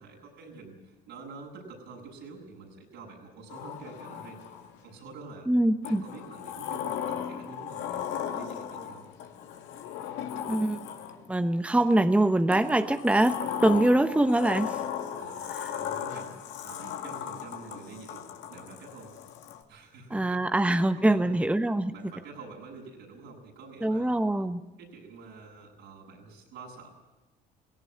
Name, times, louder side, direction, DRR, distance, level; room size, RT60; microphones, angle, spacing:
voice 1, 0.0-4.4 4.8-5.5 5.8-8.0 8.3-9.0 15.2-16.3 16.6-18.2 18.5-19.2 19.7-21.4 21.9-24.5 24.8-26.9, right 4 dB, 70° right, 1 dB, 7.6 m, -47 dB
Sliding door, 3.5-4.9 5.8-11.4 12.5-19.6, left 9 dB, 70° left, 2.1 m, -37 dB
voice 2, 5.5-6.0 10.5-10.8 11.3-14.8 15.5-15.7 20.1-21.9 23.8-24.6, right 1 dB, 5° right, 9 dB, 1.0 m, -24 dB
18.5 x 17.5 x 9.8 m, 1.1 s
hypercardioid pair, 65°, 20 cm